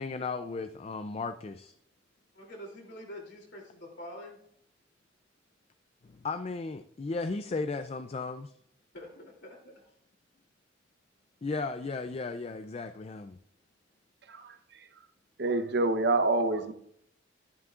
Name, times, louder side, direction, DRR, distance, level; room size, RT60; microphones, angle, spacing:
voice 1, 0.0-1.7 6.0-8.5 11.4-13.4, left 3 dB, 30° left, 0.4 m, -35 dB
voice 2, 2.3-4.4 8.9-9.8, equal, 60° left, 2.9 m, -46 dB
voice 3, 15.4-16.7, right 2 dB, 60° right, 0.8 m, -27 dB
12.5 x 11.0 x 2.4 m
head